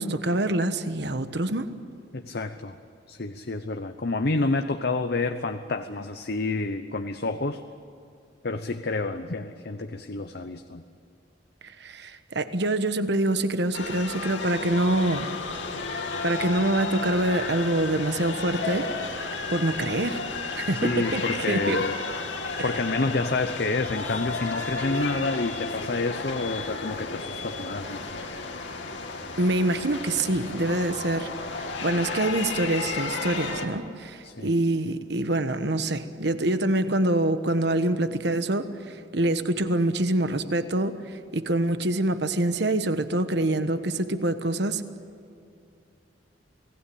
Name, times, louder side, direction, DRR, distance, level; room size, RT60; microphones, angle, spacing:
voice 1, 0.0-1.7 11.8-15.3 16.0-18.9 19.5-20.2 20.5-21.2 21.5-21.8 22.6-22.7 29.4-31.3 31.6-44.8, right 1 dB, 60° right, 10 dB, 1.3 m, -25 dB
voice 2, 2.1-2.8 3.1-7.6 8.4-10.8 20.7-21.9 22.6-28.2 34.2-34.5, left 3 dB, 55° left, 7 dB, 0.9 m, -29 dB
sound 1, 13.7-33.7, left 3 dB, 75° left, 2.5 m, -33 dB
29.0 x 19.0 x 8.6 m, 2.5 s
head